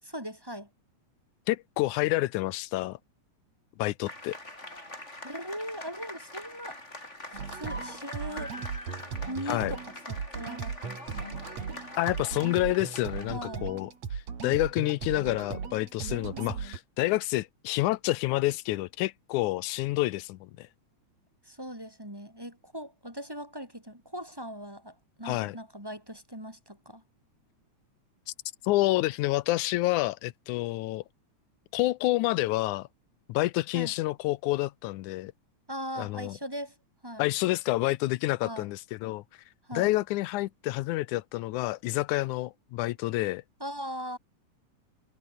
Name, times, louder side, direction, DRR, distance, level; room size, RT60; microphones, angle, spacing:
voice 1, 0.0-0.7 5.2-6.8 7.3-8.6 9.3-11.4 13.3-13.7 21.4-27.0 33.7-33.9 35.7-36.8 37.0-37.2 38.4-38.7 39.6-39.9 43.6-44.2, equal, 5° right, 7.7 m, -40 dB
voice 2, 1.5-3.0 3.8-4.3 9.5-9.7 12.0-20.7 25.3-25.6 28.6-31.0 31.7-32.9 33.3-35.3 36.0-36.4 37.2-39.2 39.7-43.4, left 18 dB, 90° left, 2.1 m, -28 dB
sound 1, 4.1-13.4, left 1 dB, 20° left, 7.2 m, -43 dB
sound 2, 7.3-16.8, right 6 dB, 60° right, 4.4 m, -37 dB
omnidirectional pair, 3.5 m